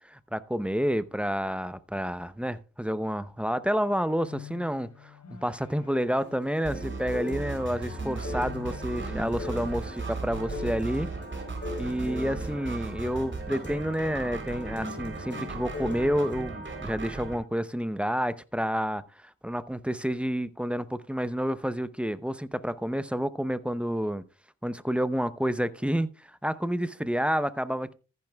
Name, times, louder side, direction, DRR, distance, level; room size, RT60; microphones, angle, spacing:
voice 1, 0.1-11.1 11.8-19.0 19.4-24.2 24.6-27.9, equal, 5° right, 0.6 m, -29 dB
sound 1, 3.7-11.7, left 8 dB, 65° left, 3.3 m, -50 dB
sound 2, 6.2-16.5, left 3 dB, 35° left, 3.9 m, -41 dB
sound 3, 6.6-17.4, right 3 dB, 40° right, 3.4 m, -36 dB
14.0 x 10.5 x 2.3 m
cardioid pair, 80°, 30 cm